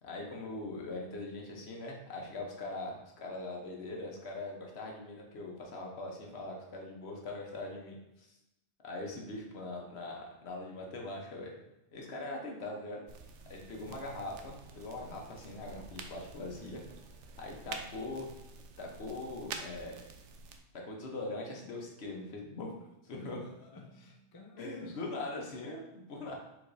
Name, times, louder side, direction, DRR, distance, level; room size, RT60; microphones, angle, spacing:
voice 1, 0.0-8.4 8.8-11.6 11.9-13.0 13.5-16.8 17.4-18.3 18.8-20.0 20.8-22.7 23.0-23.4 24.6-26.3, left 2 dB, 70° left, 0 dB, 1.1 m, -41 dB
sound 1, 13.1-20.6, right 4 dB, 85° right, 0.9 m, -48 dB
voice 2, 23.2-25.0 26.2-26.3, left 2 dB, 30° left, 1 dB, 0.4 m, -55 dB
4.7 x 4.0 x 2.6 m, 0.92 s
omnidirectional pair, 1.2 m